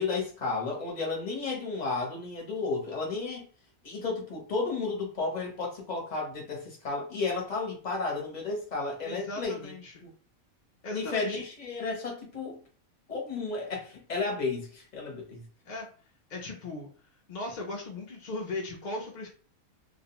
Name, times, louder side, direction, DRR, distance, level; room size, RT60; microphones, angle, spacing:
voice 1, 0.0-3.5 3.8-9.7 10.0-10.1 10.9-12.6 13.1-15.4, left 3 dB, 35° left, 0.8 m, -33 dB
voice 2, 9.0-9.9 10.8-11.4 15.7-15.9 16.3-16.9 17.3-19.3, left 2 dB, 60° left, 0.4 m, -37 dB
2.4 x 2.1 x 2.9 m
omnidirectional pair, 1.5 m